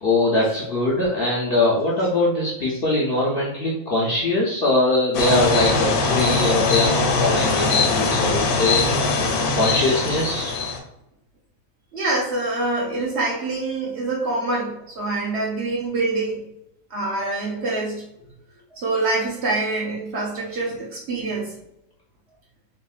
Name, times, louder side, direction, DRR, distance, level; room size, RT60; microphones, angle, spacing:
voice 1, 0.0-9.0 9.5-10.5, left 2 dB, 60° left, -5 dB, 0.6 m, -22 dB
sound 1, 5.1-10.8, left 4 dB, 90° left, 1.1 m, -21 dB
voice 2, 11.9-16.4 16.9-18.0 18.8-21.5, right 2 dB, 60° right, -3 dB, 0.8 m, -25 dB
3.5 x 2.1 x 2.3 m, 0.83 s
omnidirectional pair, 1.5 m